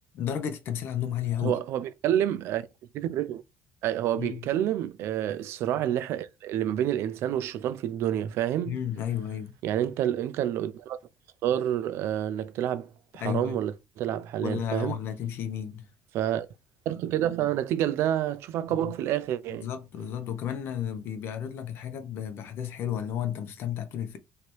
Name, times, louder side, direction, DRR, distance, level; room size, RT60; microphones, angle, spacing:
voice 1, 0.1-1.6 4.2-4.4 8.6-9.6 13.2-13.6 14.4-15.9 18.8-18.9 19.5-24.2, left 9 dB, 50° left, 0.8 m, -32 dB
voice 2, 1.4-2.7 2.9-3.4 3.8-8.8 9.6-11.0 11.4-15.0 16.1-16.5 16.9-19.7, right 11 dB, 55° right, 0.5 m, -28 dB
3.3 x 2.9 x 4.4 m
cardioid pair, 160°, 5 cm